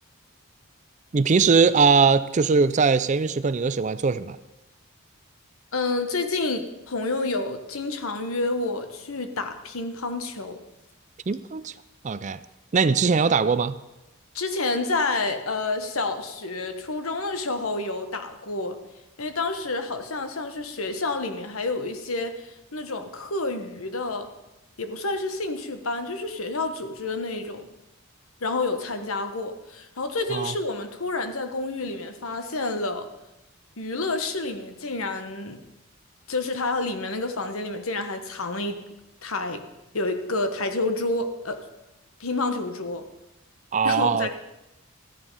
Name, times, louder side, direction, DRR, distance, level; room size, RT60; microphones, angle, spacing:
voice 1, 1.1-4.4 11.3-11.7 12.0-12.4 12.7-13.7 30.3-30.5 43.7-44.3, right 5 dB, 35° right, 15 dB, 0.4 m, -21 dB
voice 2, 5.7-10.6 14.3-18.8 19.2-24.3 24.8-27.6 28.4-33.1 33.8-35.6 36.3-38.8 39.2-39.6 39.9-41.6 42.2-43.0 43.8-44.3, left 3 dB, 75° left, 8 dB, 1.3 m, -29 dB
14.0 x 10.0 x 5.4 m, 0.97 s
head